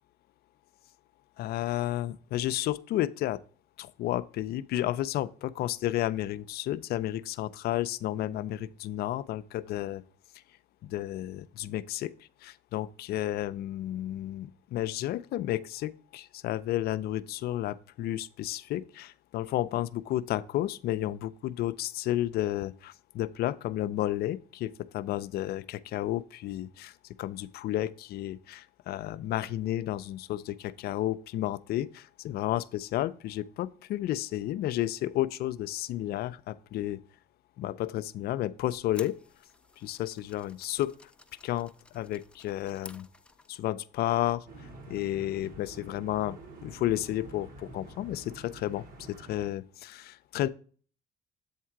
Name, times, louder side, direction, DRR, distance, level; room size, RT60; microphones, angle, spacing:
voice 1, 1.4-3.4 3.8-10.0 10.8-12.1 12.4-26.9 27.2-37.0 37.6-39.2 39.8-40.9 41.4-43.1 43.5-44.5 44.9-50.5, left 13 dB, 65° left, 0.4 m, -32 dB
sound 1, 38.9-43.7, left 2 dB, 5° left, 0.4 m, -53 dB
sound 2, 44.5-49.5, right 2 dB, 60° right, 1.6 m, -48 dB
8.0 x 3.7 x 4.5 m
cardioid pair, 110°, 17 cm